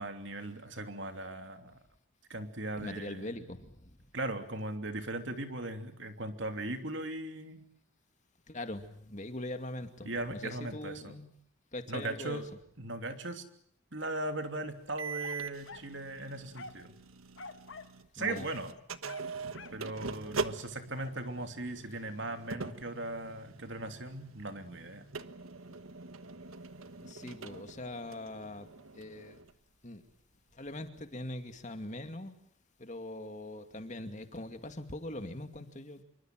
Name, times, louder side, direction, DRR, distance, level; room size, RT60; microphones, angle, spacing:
voice 1, 0.0-1.8 2.3-3.5 4.1-7.7 10.0-11.1 11.9-12.5 12.8-13.4 13.9-16.9 18.1-18.7 19.7-25.1, right 2 dB, 55° right, 7 dB, 3.1 m, -38 dB
voice 2, 2.8-3.9 8.5-11.3 11.7-12.4 18.2-18.5 27.0-28.7 29.0-29.4 29.8-30.0 30.5-32.3 32.8-36.0, left 1 dB, 35° left, 7 dB, 2.5 m, -42 dB
sound 1, 15.0-18.1 18.4-29.5, right 4 dB, 80° right, 1.3 m, -43 dB
sound 2, 15.2-15.9 16.5-16.9 17.4-17.9 18.2-18.4 19.0-19.8 21.0-21.2, left 3 dB, 60° left, 1.4 m, -48 dB
26.5 x 24.0 x 7.7 m, 0.67 s
head